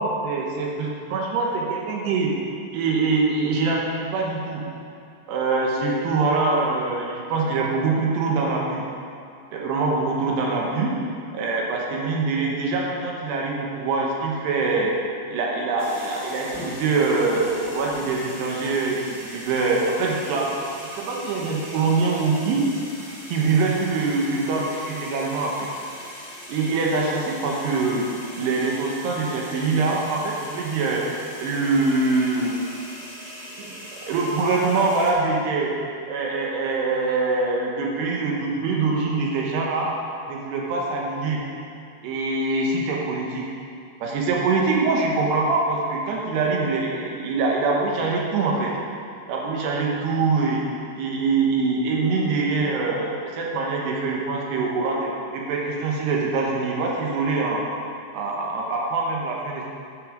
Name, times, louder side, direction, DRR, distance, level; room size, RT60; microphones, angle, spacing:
voice 1, 0.0-2.3 2.7-4.6 5.3-8.8 9.5-10.9 11.3-14.9 15.3-20.5 21.0-22.6 23.3-25.7 26.5-28.0 28.4-31.0 31.4-32.6 33.6-35.7 36.1-39.9 40.3-41.4 42.0-43.4 44.0-48.7 49.3-50.6 51.0-57.6 58.1-59.7, right 3 dB, 70° right, -2 dB, 2.8 m, -24 dB
sound 1, 15.8-35.1, left 1 dB, 20° left, 2.0 m, -40 dB
9.3 x 8.7 x 5.0 m, 2.5 s
omnidirectional pair, 5.8 m